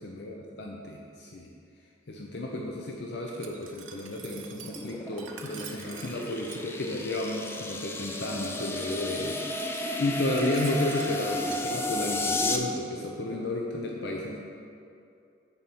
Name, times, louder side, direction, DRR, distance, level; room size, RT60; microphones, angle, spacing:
voice 1, 0.0-1.5 2.1-14.4, left 1 dB, 60° left, -1 dB, 0.7 m, -32 dB
Glass, 3.3-6.6 8.3-11.6, right 7 dB, 85° right, 0.7 m, -47 dB
sound 1, 4.6-12.6, left 2 dB, 10° left, 0.4 m, -33 dB
7.1 x 4.4 x 6.9 m, 2.6 s
head